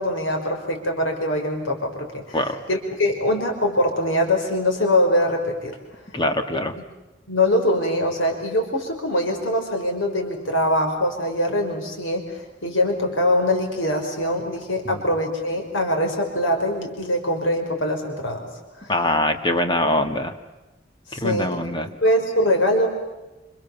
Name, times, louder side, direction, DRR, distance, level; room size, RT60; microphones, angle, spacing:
voice 1, 0.0-2.4 2.7-5.8 7.3-18.5 18.8-18.9 21.1-21.7 22.0-22.9, left 1 dB, 85° left, 2 dB, 5.6 m, -23 dB
voice 2, 6.1-6.7 14.9-15.0 18.9-20.3 21.1-21.9, left 1 dB, 25° left, 6 dB, 2.0 m, -23 dB
29.0 x 27.5 x 7.3 m, 1.1 s
head